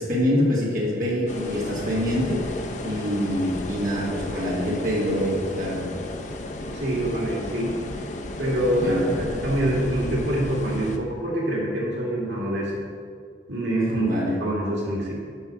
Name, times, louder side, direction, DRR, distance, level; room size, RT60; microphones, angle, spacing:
voice 1, 0.0-5.9 8.8-9.0 13.9-14.4, left 1 dB, 50° right, -5 dB, 1.8 m, -25 dB
sound 1, 1.3-11.0, left 1 dB, 45° left, 0.6 m, -34 dB
voice 2, 6.6-7.7 8.4-12.7 13.5-14.1 14.4-15.1, right 1 dB, 85° right, -3 dB, 2.0 m, -25 dB
7.9 x 5.4 x 6.1 m, 2.2 s
head